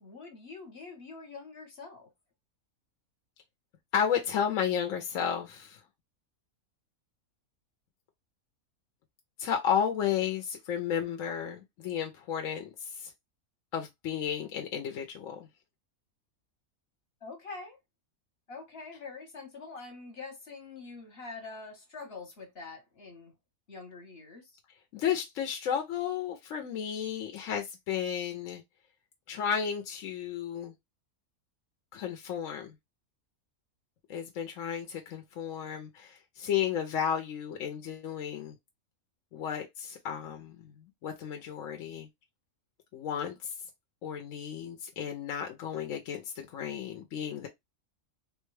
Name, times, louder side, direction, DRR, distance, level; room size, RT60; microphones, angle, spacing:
voice 1, 0.0-2.1 17.2-17.8 18.5-23.3 23.7-24.5, left 4 dB, 50° left, 1.1 m, -45 dB
voice 2, 3.9-5.8 9.4-13.1 13.7-15.5 24.9-28.6 29.3-30.7 31.9-32.7 34.1-38.6 39.3-42.1 42.9-43.5 44.0-47.5, left 8 dB, 70° left, 0.9 m, -33 dB
3.6 x 2.2 x 3.1 m
omnidirectional pair, 1.5 m